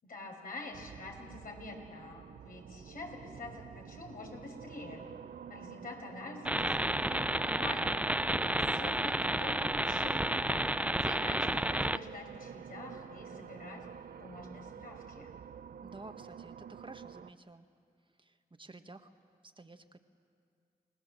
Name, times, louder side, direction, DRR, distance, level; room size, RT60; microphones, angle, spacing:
voice 1, 0.0-5.0 5.5-8.0 8.7-10.8 11.0-13.9 14.2-15.3, left 2 dB, 65° left, 1 dB, 5.8 m, -46 dB
sound 1, 0.7-17.3, right 8 dB, 70° right, 0.6 m, -49 dB
sound 2, 6.4-12.0, right 1 dB, 10° right, 0.7 m, -31 dB
voice 2, 8.2-8.7 15.8-17.7 18.2-19.1 19.4-20.0, right 2 dB, 30° right, 7 dB, 1.6 m, -51 dB
29.5 x 19.0 x 7.8 m, 2.3 s
supercardioid pair, 40°, 16 cm